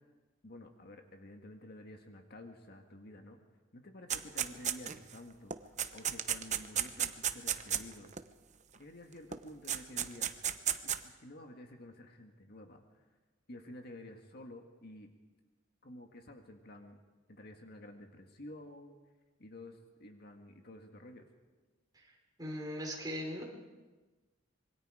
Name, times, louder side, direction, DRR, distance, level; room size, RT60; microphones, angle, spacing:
voice 1, 0.4-3.4 3.7-8.1 8.8-10.4 10.8-13.0 13.5-15.1 15.8-17.0 17.3-19.0 19.4-21.3, left 1 dB, 50° left, 4 dB, 1.8 m, -51 dB
sound 1, 4.1-5.1 5.5-8.2 9.3-9.4 9.7-11.0, right 9 dB, 35° right, 0.9 m, -33 dB
voice 2, 22.4-23.4, equal, 20° right, -1 dB, 4.7 m, -39 dB
26.0 x 22.5 x 5.0 m, 1.2 s
head